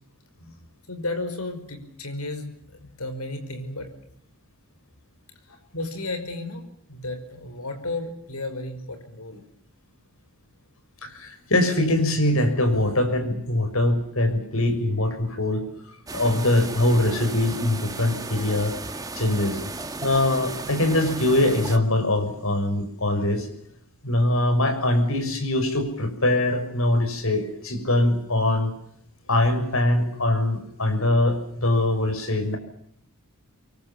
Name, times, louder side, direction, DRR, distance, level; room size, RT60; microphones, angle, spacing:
voice 1, 0.9-3.9 5.7-9.4, left 2 dB, 85° left, 7 dB, 5.4 m, -33 dB
voice 2, 11.0-15.6 16.1-18.7 19.1-19.6 20.0-23.5 24.0-28.7 29.3-32.6, left 1 dB, 70° left, 7 dB, 6.4 m, -22 dB
sound 1, 16.1-21.8, right 3 dB, 15° right, 1.7 m, -35 dB
27.0 x 23.5 x 7.3 m, 0.73 s
head